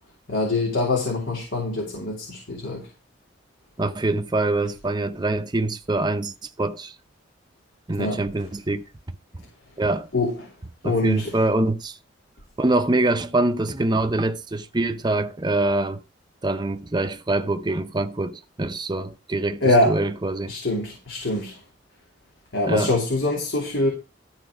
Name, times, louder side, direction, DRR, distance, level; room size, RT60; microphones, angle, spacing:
voice 1, 0.3-2.9 8.0-8.2 10.1-10.5 10.8-11.4 19.6-20.0 20.5-21.6 22.5-23.9, left 2 dB, 90° left, 3.0 m, -24 dB
voice 2, 3.8-6.9 7.9-8.8 9.8-10.1 10.8-12.0 12.6-16.0 16.4-20.5 22.7-22.9, right 2 dB, 25° right, 0.6 m, -24 dB
13.0 x 4.5 x 6.0 m
head